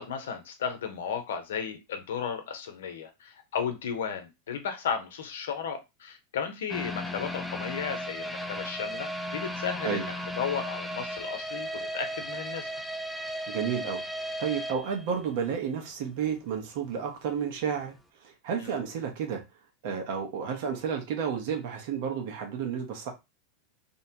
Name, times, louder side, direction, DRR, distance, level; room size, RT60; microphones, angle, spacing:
voice 1, 0.0-12.7 18.6-18.8, left 7 dB, 80° left, 0.7 m, -34 dB
sound 1, 6.7-15.7 16.0-16.1 16.6-16.7, equal, ahead, 0.4 m, -36 dB
voice 2, 13.5-14.0 14.4-17.9 18.2-19.4 19.8-23.1, right 7 dB, 65° right, 1.0 m, -31 dB
2.7 x 2.1 x 2.8 m
hypercardioid pair, 110°, 0 cm